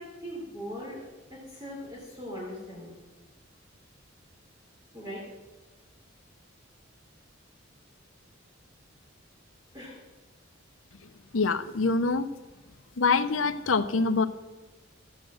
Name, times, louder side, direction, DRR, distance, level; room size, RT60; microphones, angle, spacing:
voice 1, 0.0-2.9 4.9-5.2 9.7-10.0, equal, 20° right, -5 dB, 3.1 m, -40 dB
voice 2, 11.3-12.3 13.0-14.3, left 4 dB, 85° left, 11 dB, 0.8 m, -25 dB
14.0 x 9.0 x 6.3 m, 1.1 s
head